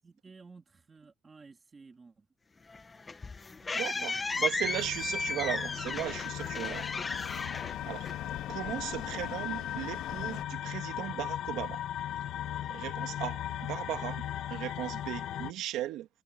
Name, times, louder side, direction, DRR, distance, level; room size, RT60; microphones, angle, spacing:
voice 1, 0.0-2.3 3.9-4.3 5.5-5.8, right 4 dB, 20° right, 2.6 m, -54 dB
sound 1, 2.7-8.5, left 3 dB, 15° left, 1.3 m, -35 dB
sound 2, 3.6-10.4, left 14 dB, 70° left, 2.2 m, -45 dB
voice 2, 3.7-6.9 7.9-8.1 8.5-11.8 12.7-16.1, right 14 dB, 65° right, 2.5 m, -37 dB
sound 3, 4.6-15.5, left 11 dB, 55° left, 1.5 m, -37 dB
cardioid pair, 175°, 0 cm